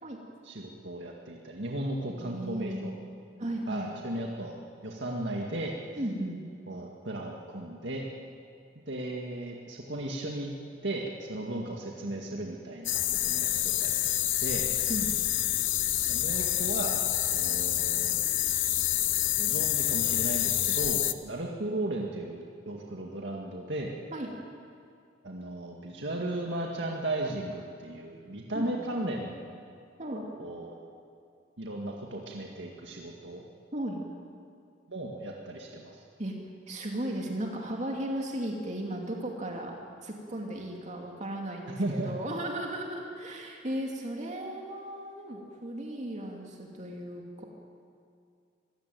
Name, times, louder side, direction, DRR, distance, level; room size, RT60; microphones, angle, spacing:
voice 1, 0.4-2.9 3.7-4.6 4.8-5.7 6.7-8.0 8.9-10.5 10.8-14.7 16.1-17.0 17.3-18.1 19.4-23.9 25.2-29.4 30.4-30.8 31.6-33.4 34.9-36.0 41.8-42.1, right 1 dB, 70° right, -1 dB, 2.1 m, -35 dB
voice 2, 2.1-3.0 3.4-3.9 6.0-6.4 14.9-15.1 24.1-24.3 28.5-28.9 30.0-30.3 33.7-34.0 36.2-36.4 36.7-39.7 40.0-47.5, right 1 dB, 40° right, 0 dB, 2.5 m, -35 dB
sound 1, 12.9-21.1, left 13 dB, 85° left, 0.9 m, -27 dB
26.0 x 16.5 x 9.3 m, 2.4 s
head